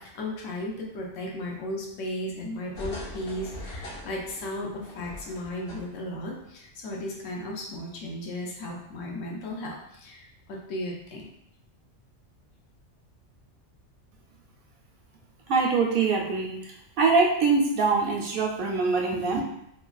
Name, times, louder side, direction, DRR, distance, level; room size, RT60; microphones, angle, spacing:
voice 1, 0.0-11.3, left 1 dB, 90° left, -1 dB, 1.0 m, -35 dB
sound 1, 2.7-6.2 6.5-6.6, left 1 dB, 60° left, 0.8 m, -41 dB
voice 2, 15.5-16.6 17.0-19.4, right 4 dB, 55° right, -1 dB, 0.7 m, -23 dB
3.2 x 2.3 x 2.3 m, 0.77 s
omnidirectional pair, 1.3 m